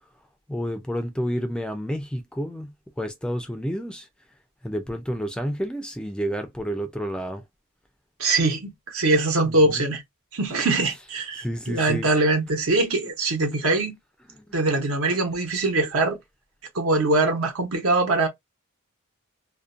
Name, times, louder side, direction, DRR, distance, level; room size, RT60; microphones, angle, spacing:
voice 1, 0.5-4.1 4.6-7.4 9.4-9.8 11.3-12.1 14.3-14.4, equal, 5° left, 0.3 m, -30 dB
voice 2, 8.2-10.0 10.3-14.0 14.5-16.2 16.7-18.3, right 2 dB, 70° right, 0.9 m, -22 dB
2.5 x 2.2 x 2.4 m
head